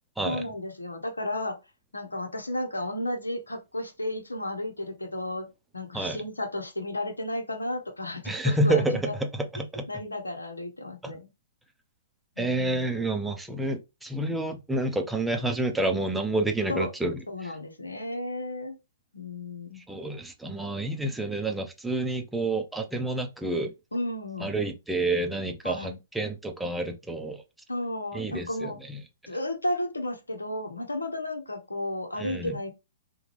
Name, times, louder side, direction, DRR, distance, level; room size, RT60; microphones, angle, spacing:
voice 1, 0.2-1.5 1.9-5.5 5.7-9.1 9.6-11.3 12.4-13.2 16.7-16.9 17.3-18.8 19.1-19.8 23.9-24.6 25.6-26.0 27.7-28.8 29.3-32.7, left 1 dB, 90° left, 0.8 m, -33 dB
voice 2, 8.3-9.1 9.5-9.9 11.0-11.1 12.4-17.5 19.9-23.7 24.4-27.4 28.1-29.0 32.2-32.6, right 2 dB, 5° right, 0.5 m, -29 dB
3.5 x 2.2 x 3.2 m
figure-of-eight pair, 120°, 0 cm